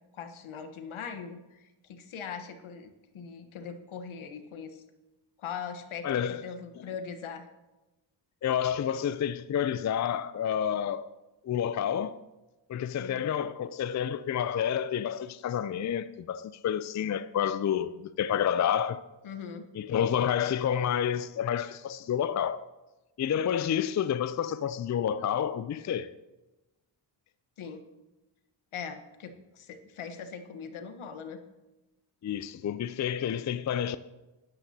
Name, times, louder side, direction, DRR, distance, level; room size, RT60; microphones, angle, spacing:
voice 1, 0.1-4.8 5.4-7.5 13.0-13.2 19.2-19.6 27.6-27.8 28.7-31.4, left 6 dB, 70° left, 1.3 m, -41 dB
voice 2, 6.0-6.4 8.4-11.1 11.4-12.2 12.7-19.0 19.7-22.7 23.2-26.1 32.2-34.0, left 9 dB, 35° left, 0.5 m, -29 dB
12.5 x 10.0 x 2.8 m
supercardioid pair, 50°, 50 cm